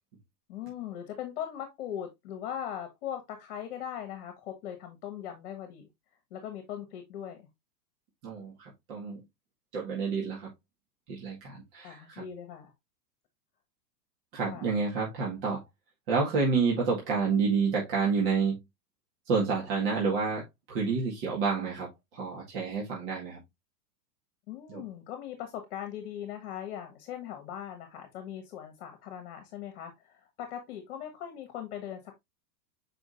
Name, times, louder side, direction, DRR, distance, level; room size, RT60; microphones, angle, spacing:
voice 1, 0.5-5.9 6.3-7.5 11.8-12.7 14.5-14.7 24.5-32.2, left 10 dB, 40° left, 1.5 m, -40 dB
voice 2, 8.2-9.2 9.7-10.5 11.1-12.2 14.3-15.6 16.1-18.6 19.3-23.4 24.7-24.8, right 5 dB, 35° right, 2.0 m, -29 dB
7.0 x 5.1 x 2.6 m
supercardioid pair, 170°, 49 cm